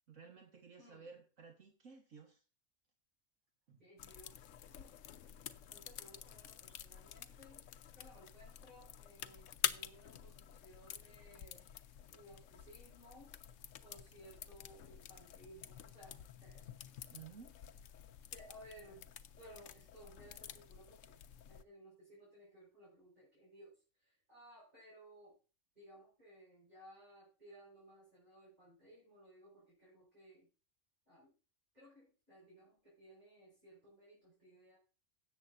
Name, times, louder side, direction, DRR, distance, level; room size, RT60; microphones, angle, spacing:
voice 1, 0.1-2.4 3.7-3.8 17.1-17.5, right 6 dB, 75° right, 2 dB, 1.8 m, -55 dB
voice 2, 3.8-4.4 4.7-5.0 5.7-7.6 8.0-11.7 12.1-13.3 13.8-16.7 18.3-19.1 19.4-21.2 21.5-25.4 25.8-30.5 31.1-31.3 31.7-34.8, equal, 35° right, -6 dB, 5.4 m, -60 dB
sound 1, 4.0-21.6, left 10 dB, 75° left, 1.0 m, -48 dB
17.0 x 7.7 x 2.6 m, 0.34 s
omnidirectional pair, 1.3 m